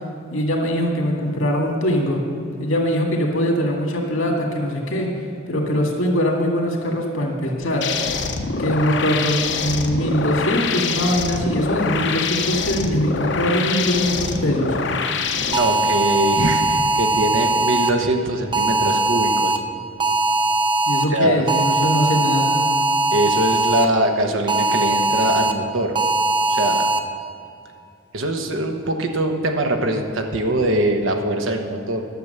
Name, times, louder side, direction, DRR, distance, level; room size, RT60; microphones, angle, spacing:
voice 1, 0.3-2.3 2.6-5.1 5.5-7.9 8.6-14.8 20.9-22.5, equal, 85° left, 0 dB, 2.0 m, -22 dB
sound 1, 7.8-15.6, left 5 dB, 60° left, 0.7 m, -25 dB
voice 2, 15.4-19.6 21.1-21.5 23.1-26.0 26.5-26.8 28.1-32.0, right 1 dB, 75° right, 4 dB, 1.1 m, -22 dB
sound 2, 15.5-17.9 18.5-19.6 20.0-21.1 21.5-23.8 24.5-25.5 26.0-27.0, right 2 dB, 25° right, 0.5 m, -20 dB
11.5 x 7.2 x 6.7 m, 2.5 s
head